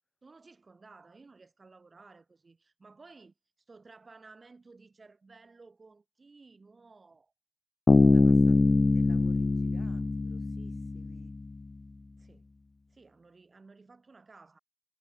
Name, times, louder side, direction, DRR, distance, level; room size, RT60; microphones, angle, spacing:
voice 1, 0.2-3.3 3.7-7.3 8.1-8.4 12.2-12.5 12.9-14.6, right 3 dB, 55° right, 3.0 m, -55 dB
Bass guitar, 7.9-11.4, left 3 dB, 45° left, 0.3 m, -23 dB
voice 2, 8.0-8.6 8.9-11.4, left 2 dB, 25° left, 3.5 m, -56 dB
wide cardioid pair, 70°, 0 cm